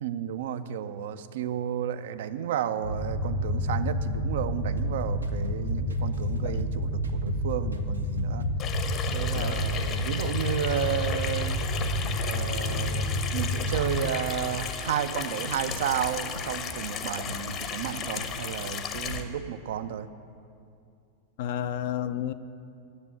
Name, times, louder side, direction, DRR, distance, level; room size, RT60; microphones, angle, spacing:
voice 1, 0.0-8.5 9.1-11.6 12.2-20.1, right 9 dB, 55° right, 0.4 m, -32 dB
sound 1, 2.8-14.0, equal, 85° left, 2.1 m, -29 dB
sound 2, 4.8-7.5 7.7-10.4 10.7-14.1 14.3-14.7 15.0-17.7 17.9-18.4 18.6-19.3, equal, 80° right, 0.8 m, -42 dB
Water tap faucet / Sink (filling or washing), 8.6-19.2, left 7 dB, 35° left, 0.8 m, -35 dB
voice 2, 21.4-22.3, left 10 dB, 50° left, 0.4 m, -31 dB
9.6 x 7.4 x 8.0 m
figure-of-eight pair, 90°, 0 cm